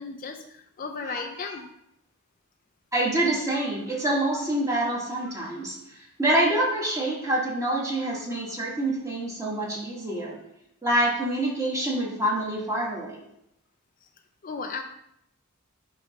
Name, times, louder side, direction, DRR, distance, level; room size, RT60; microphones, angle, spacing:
voice 1, 0.0-1.7 14.0-14.1 14.4-14.8, left 4 dB, 40° left, 5 dB, 0.4 m, -35 dB
voice 2, 2.9-5.7 6.2-10.4 10.8-13.2, right 1 dB, 15° right, -3 dB, 1.5 m, -26 dB
6.3 x 3.1 x 5.6 m, 0.78 s
head